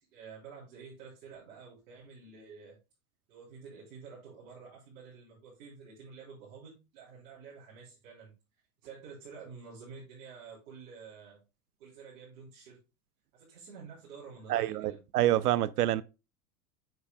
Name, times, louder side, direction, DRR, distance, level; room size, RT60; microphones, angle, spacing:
voice 1, 0.1-2.8 3.3-8.3 8.8-11.4 11.8-12.8 13.3-15.0, right 5 dB, 60° right, 3.6 m, -49 dB
voice 2, 14.5-16.0, right 13 dB, 80° right, 0.6 m, -27 dB
7.6 x 6.6 x 2.3 m
hypercardioid pair, 95°, 45 cm